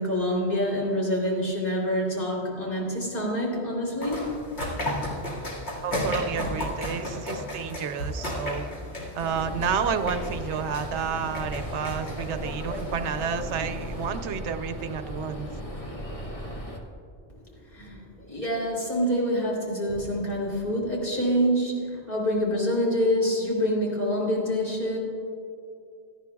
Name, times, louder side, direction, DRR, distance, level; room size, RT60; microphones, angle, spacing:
voice 1, 0.0-4.3 17.6-25.0, equal, 50° left, -4 dB, 3.6 m, -26 dB
sound 1, 4.0-14.1, left 1 dB, 70° left, 2.4 m, -34 dB
voice 2, 5.8-8.7 9.1-15.5, right 7 dB, 85° right, 9 dB, 1.0 m, -30 dB
sound 2, 9.2-16.8, equal, 30° left, 1.5 m, -36 dB
17.5 x 13.0 x 2.3 m, 2.4 s
omnidirectional pair, 1.1 m